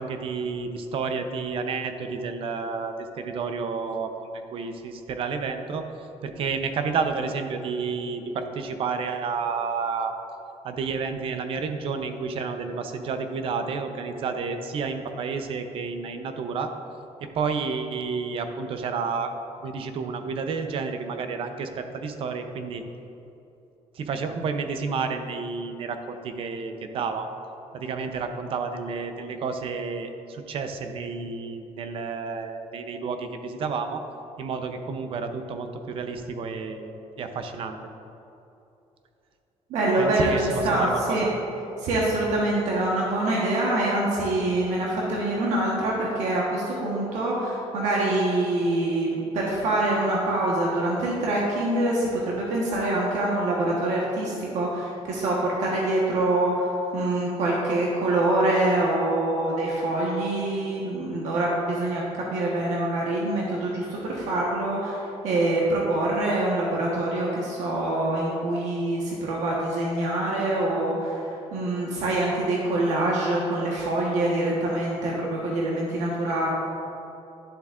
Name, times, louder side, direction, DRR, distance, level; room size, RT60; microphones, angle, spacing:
voice 1, 0.0-5.8 6.2-10.1 10.6-16.7 17.2-19.3 19.6-22.8 23.9-27.3 27.7-34.0 34.4-37.8 40.0-41.3, right 5 dB, 50° right, 7 dB, 0.6 m, -30 dB
voice 2, 39.7-41.2 41.8-76.5, right 1 dB, 80° right, -4 dB, 1.2 m, -25 dB
11.0 x 7.1 x 2.4 m, 2.8 s
cardioid pair, 165°, 12 cm